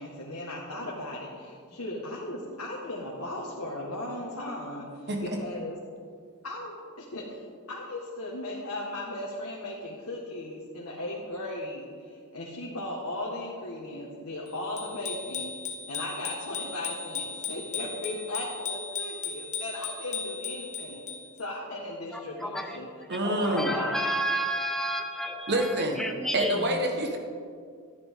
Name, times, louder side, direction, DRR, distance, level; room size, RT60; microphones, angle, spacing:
voice 1, 0.0-5.8 6.4-15.5 15.9-21.0 21.4-22.9 23.2-23.9, left 1 dB, 85° left, -4 dB, 1.6 m, -37 dB
voice 2, 5.1-5.4 23.1-23.7 25.5-26.0 26.3-27.2, right 1 dB, 50° right, 3 dB, 1.4 m, -27 dB
Bicycle bell, 14.8-21.4, left 5 dB, 35° left, 1.1 m, -36 dB
voice 3, 22.1-22.8 23.2-26.7, equal, ahead, 4 dB, 0.8 m, -31 dB
12.5 x 10.0 x 3.7 m, 2.1 s
head